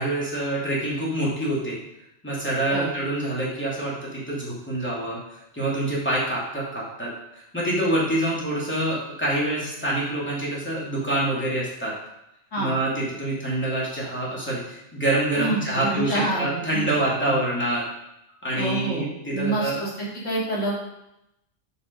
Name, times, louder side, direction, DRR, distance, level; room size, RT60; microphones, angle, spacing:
voice 1, 0.0-1.8 2.2-11.9 12.6-17.8 18.4-19.8, right 1 dB, 10° left, -7 dB, 2.6 m, -26 dB
voice 2, 15.4-16.9 17.2-17.3 18.6-19.1 19.3-19.9 20.2-20.8, right 2 dB, 85° left, -5 dB, 2.8 m, -27 dB
6.4 x 5.7 x 5.3 m, 0.85 s
omnidirectional pair, 1.2 m